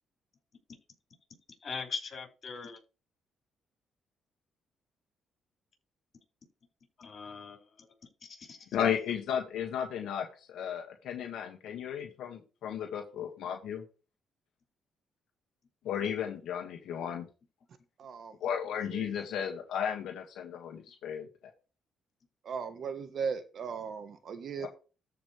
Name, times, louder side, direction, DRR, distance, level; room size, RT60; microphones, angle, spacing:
voice 1, 1.6-2.8 7.0-7.9 8.2-8.6, left 5 dB, 50° left, 5.8 m, -41 dB
voice 2, 8.7-13.8 15.8-17.3 18.4-21.3 24.6-24.7, left 8 dB, 80° left, 1.9 m, -34 dB
voice 3, 18.0-18.3 18.9-19.1 22.4-24.7, right 6 dB, 60° right, 1.3 m, -37 dB
14.0 x 5.4 x 3.4 m
cardioid pair, 90°, 0 cm